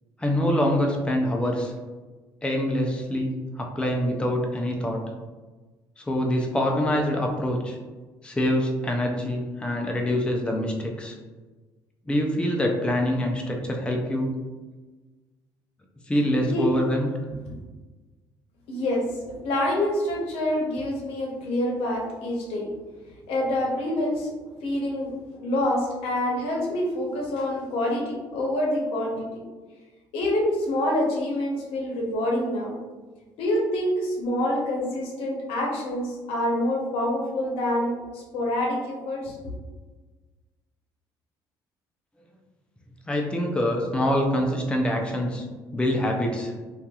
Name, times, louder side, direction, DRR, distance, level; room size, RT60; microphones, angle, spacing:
voice 1, 0.2-1.7 2.4-5.0 6.0-7.8 8.2-11.1 12.1-14.3 16.1-17.1 43.1-45.4 45.7-46.5, equal, 10° left, 1 dB, 0.4 m, -25 dB
voice 2, 18.7-19.1 19.4-22.7 23.3-24.3 24.6-25.1 25.4-29.3 30.1-32.8 33.4-39.4, left 1 dB, 75° left, -2 dB, 0.7 m, -26 dB
2.7 x 2.4 x 2.3 m, 1.3 s
supercardioid pair, 65°, 10 cm